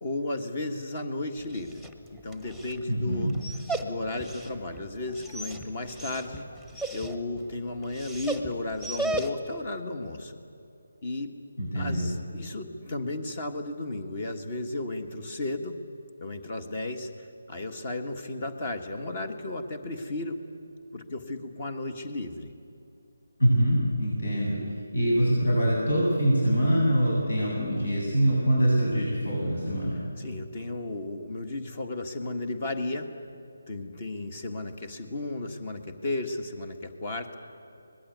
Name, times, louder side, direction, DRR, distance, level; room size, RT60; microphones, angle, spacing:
voice 1, 0.0-1.9 2.2-3.3 3.8-6.5 6.9-10.4 11.0-11.3 11.7-15.8 16.2-20.4 20.9-22.5 30.2-33.1 33.7-37.4, left 2 dB, 35° left, 8 dB, 1.7 m, -34 dB
Dog, 1.4-9.7, right 2 dB, 5° left, 1.3 m, -37 dB
voice 2, 2.9-3.3 11.6-12.1 23.4-24.6 24.9-30.0, equal, 75° left, -4 dB, 8.0 m, -24 dB
24.5 x 20.0 x 9.7 m, 2.6 s
figure-of-eight pair, 155°, 0 cm